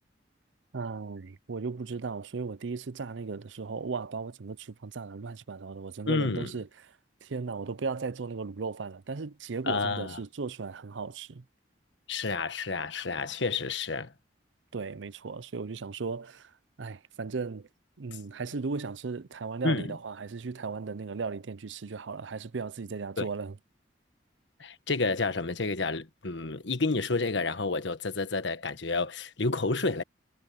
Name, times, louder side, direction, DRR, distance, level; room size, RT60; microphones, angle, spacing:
voice 1, 0.7-6.7 7.2-11.4 14.7-16.5 16.8-17.7 18.0-23.6, right 4 dB, 85° right, 0.6 m, -36 dB
voice 2, 6.1-6.5 9.7-10.2 12.1-14.1 19.6-20.0 23.2-23.3 24.6-30.0, left 3 dB, 75° left, 1.3 m, -30 dB
head